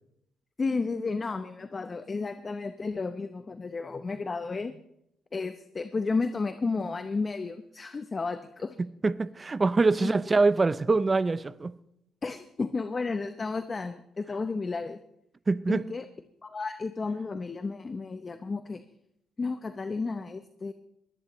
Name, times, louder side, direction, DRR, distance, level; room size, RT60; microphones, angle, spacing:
voice 1, 0.6-4.8 5.3-8.8 10.0-10.2 12.2-15.0 15.7-16.0 16.4-18.8 19.4-20.7, left 4 dB, 30° left, 0.8 m, -32 dB
voice 2, 8.8-11.8 15.5-15.8, right 3 dB, 25° right, 0.6 m, -24 dB
22.0 x 17.5 x 3.1 m
cardioid pair, 90°, 0 cm